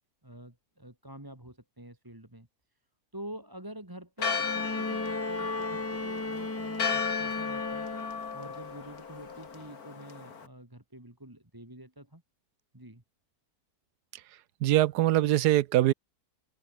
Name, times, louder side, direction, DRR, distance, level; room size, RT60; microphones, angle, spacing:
voice 1, 0.2-2.5 3.1-7.9 8.3-12.2 12.7-13.0, right 1 dB, 15° right, 2.7 m, -47 dB
Church bell, 4.2-10.5, left 5 dB, 70° left, 2.5 m, -35 dB
Bowed string instrument, 4.4-8.4 9.7-9.8, left 2 dB, 15° left, 0.5 m, -35 dB
voice 2, 14.6-15.9, right 14 dB, 90° right, 1.2 m, -23 dB
omnidirectional pair, 1.7 m